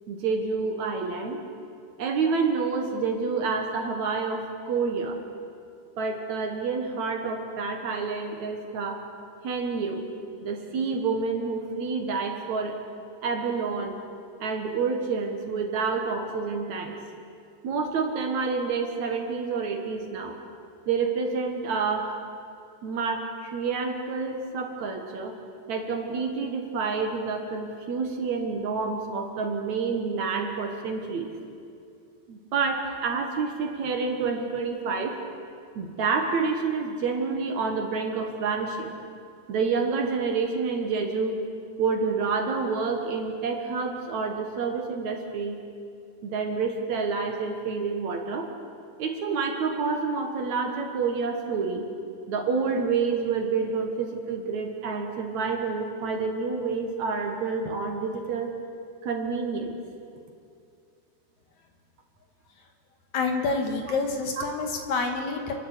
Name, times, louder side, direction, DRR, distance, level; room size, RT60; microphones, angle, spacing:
voice 1, 0.1-1.4 2.0-5.2 6.0-9.0 9.4-10.1 10.4-12.8 13.2-14.0 14.4-17.0 17.6-20.4 20.9-22.2 22.8-25.4 25.7-31.3 32.3-35.2 35.8-38.9 39.5-41.4 41.8-45.6 46.2-48.5 49.0-51.9 52.3-58.5 59.0-59.8 64.4-64.5, right 4 dB, 60° right, 3 dB, 2.6 m, -28 dB
voice 2, 63.1-65.5, left 4 dB, 60° left, 3 dB, 2.8 m, -27 dB
29.5 x 11.5 x 8.3 m, 2.5 s
omnidirectional pair, 4.1 m